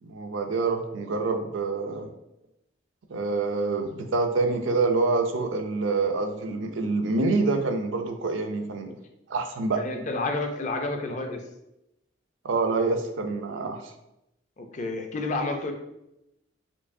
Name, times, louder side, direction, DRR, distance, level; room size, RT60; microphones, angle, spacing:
voice 1, 0.0-2.1 3.1-8.9 9.3-9.8 12.4-13.9, right 3 dB, 80° right, 5 dB, 0.5 m, -26 dB
voice 2, 9.7-11.4 14.6-15.7, left 2 dB, 40° left, 4 dB, 0.4 m, -30 dB
4.5 x 2.5 x 2.6 m, 0.87 s
head